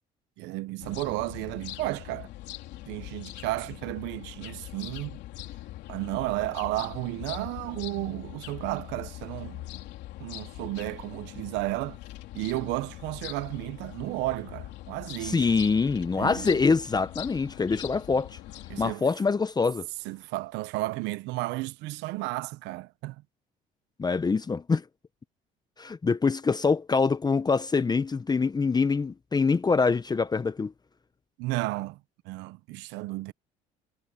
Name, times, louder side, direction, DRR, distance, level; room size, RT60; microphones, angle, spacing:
voice 1, 0.4-2.3 2.9-5.2 5.9-9.7 10.2-12.0 12.3-15.5 16.1-16.6 18.7-19.0 20.0-23.2 31.4-32.0 32.2-33.3, right 19 dB, 85° right, 0.9 m, -33 dB
sound 1, 0.8-18.9, left 16 dB, 75° left, 3.5 m, -42 dB
voice 2, 15.2-18.4 18.8-19.9 24.0-24.8 25.8-30.7, left 4 dB, 20° left, 0.9 m, -25 dB
supercardioid pair, 90°, 18 cm